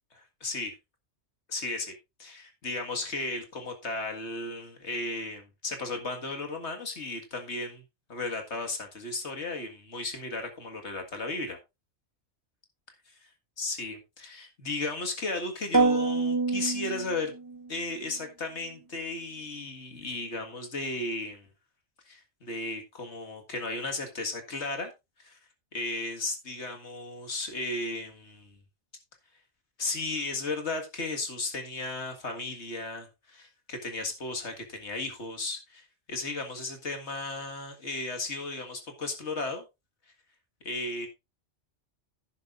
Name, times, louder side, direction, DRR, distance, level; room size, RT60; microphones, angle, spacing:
voice 1, 0.1-0.7 1.5-1.9 2.2-7.8 8.1-11.6 13.6-17.3 17.7-21.5 22.1-24.9 25.2-25.4 25.7-28.6 29.8-39.6 40.6-41.1, left 2 dB, 70° left, 2.1 m, -35 dB
sound 1, 15.7-17.7, right 3 dB, 20° right, 1.2 m, -26 dB
11.0 x 10.5 x 2.5 m
omnidirectional pair, 1.2 m